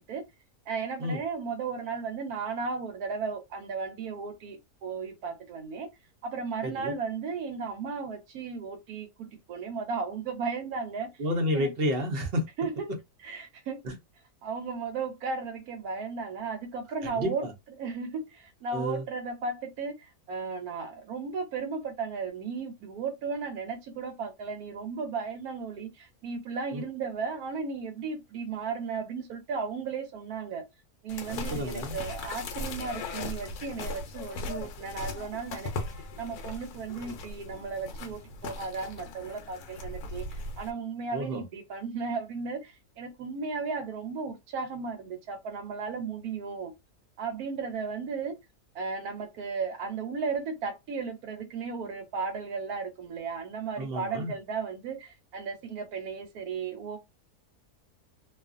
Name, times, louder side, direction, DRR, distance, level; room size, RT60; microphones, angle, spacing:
voice 1, 0.7-5.9 6.2-11.1 11.5-11.7 12.6-12.9 13.2-13.8 14.4-17.4 17.8-30.6 31.0-46.7 47.2-48.4 48.7-57.0, right 5 dB, 70° right, 1.1 m, -35 dB
voice 2, 6.6-6.9 11.2-12.5 13.8-13.9 17.0-17.5 18.7-19.0 26.7-26.8 31.3-32.0 41.1-41.4 53.8-54.3, equal, 50° right, 0.8 m, -30 dB
sound 1, 31.1-40.7, left 3 dB, 70° left, 1.1 m, -38 dB
2.7 x 2.4 x 2.4 m
omnidirectional pair, 1.7 m